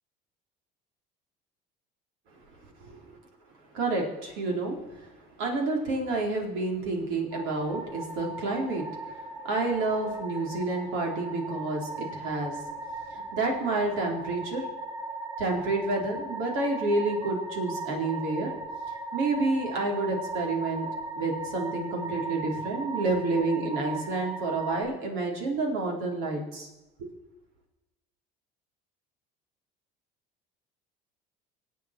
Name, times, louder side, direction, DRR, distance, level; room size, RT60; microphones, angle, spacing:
voice 1, 3.7-5.1 5.4-12.6 13.1-14.7 15.4-18.5 19.1-20.9 21.2-26.7 27.0-27.1, right 2 dB, 70° right, 0 dB, 4.3 m, -29 dB
sound 1, 7.3-24.8, right 2 dB, 25° right, 5.3 m, -37 dB
25.0 x 8.5 x 4.6 m, 1.0 s
supercardioid pair, 90°, 21 cm